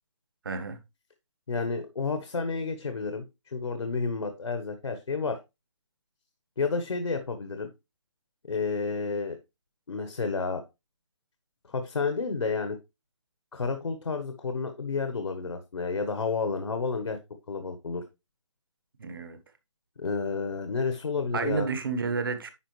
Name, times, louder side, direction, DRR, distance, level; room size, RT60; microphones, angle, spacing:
voice 1, 0.4-0.8 19.0-19.4 21.3-22.5, right 4 dB, 45° right, 1.4 m, -30 dB
voice 2, 1.5-5.4 6.6-7.7 8.4-9.4 9.9-10.6 11.7-12.8 13.5-17.2 17.5-18.0 20.0-21.7, left 4 dB, 75° left, 1.4 m, -30 dB
10.0 x 5.1 x 3.2 m
hypercardioid pair, 170°, 16 cm